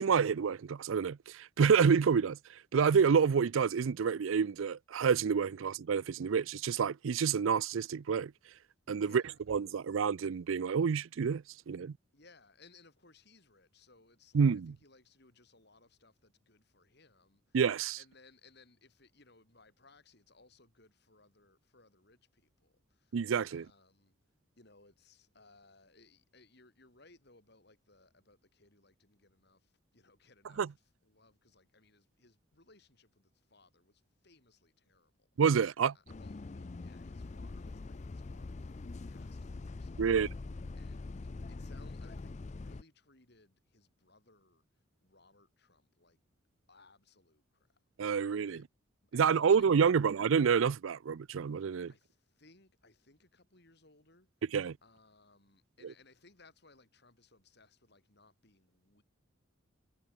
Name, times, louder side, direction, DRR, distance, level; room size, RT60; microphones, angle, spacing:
voice 1, 0.0-8.3 8.9-9.2 9.5-11.9 14.3-14.7 17.5-18.0 23.1-23.6 30.6-30.7 35.4-35.9 40.0-40.3 48.0-48.6 49.1-51.9 54.5-54.8, right 6 dB, 75° right, 0.4 m, -28 dB
voice 2, 8.9-9.4 12.1-17.6 18.0-23.2 23.5-24.1 24.6-35.3 35.9-40.0 40.8-46.2 46.7-48.1 48.5-48.7 49.0-49.7 49.9-50.1 51.9-54.3 54.8-59.0, left 3 dB, 55° left, 4.2 m, -64 dB
Bus, 36.1-42.8, left 3 dB, 35° left, 0.4 m, -43 dB
head